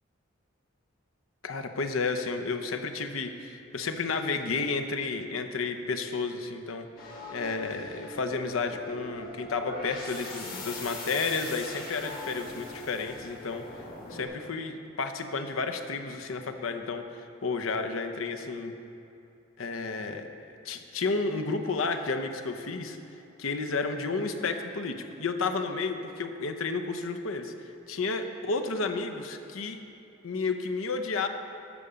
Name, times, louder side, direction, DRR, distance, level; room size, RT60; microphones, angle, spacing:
voice 1, 1.4-6.9 7.3-13.6 14.1-18.7 19.6-20.3 20.6-23.0 23.4-27.5 27.9-29.8 30.2-31.3, left 4 dB, 85° left, 6 dB, 0.8 m, -31 dB
sound 1, 7.0-14.2, left 2 dB, 50° left, 1.9 m, -41 dB
12.0 x 6.9 x 5.1 m, 2.6 s
head